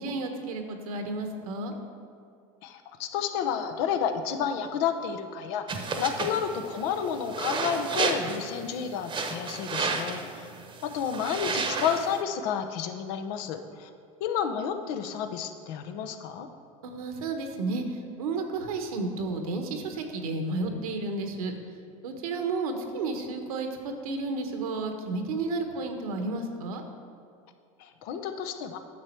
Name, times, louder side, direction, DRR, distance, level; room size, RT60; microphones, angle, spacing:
voice 1, 0.0-1.7 16.8-21.5 22.0-26.8, right 3 dB, 85° right, 5 dB, 1.2 m, -32 dB
voice 2, 2.6-10.4 10.8-13.9 14.2-16.5 27.8-28.8, left 7 dB, 65° left, 7 dB, 0.9 m, -31 dB
sound 1, 5.7-12.2, right 4 dB, 25° right, 1.0 m, -32 dB
9.6 x 7.0 x 4.5 m, 2.4 s
supercardioid pair, 100°, 18 cm